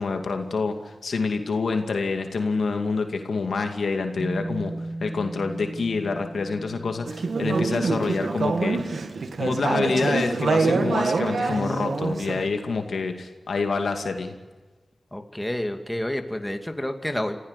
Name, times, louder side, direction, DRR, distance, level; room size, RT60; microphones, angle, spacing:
voice 1, 0.0-4.7 5.0-8.8 9.4-14.3, left 4 dB, 85° left, 5 dB, 2.4 m, -27 dB
sound 1, 4.2-8.5, right 2 dB, 25° right, 7.6 m, -37 dB
Conversation / Chatter, 7.1-12.4, right 4 dB, 75° right, 1.6 m, -25 dB
voice 2, 15.1-17.4, left 1 dB, 10° left, 6 dB, 2.4 m, -29 dB
26.0 x 15.5 x 8.3 m, 1.3 s
cardioid pair, 55°, 0 cm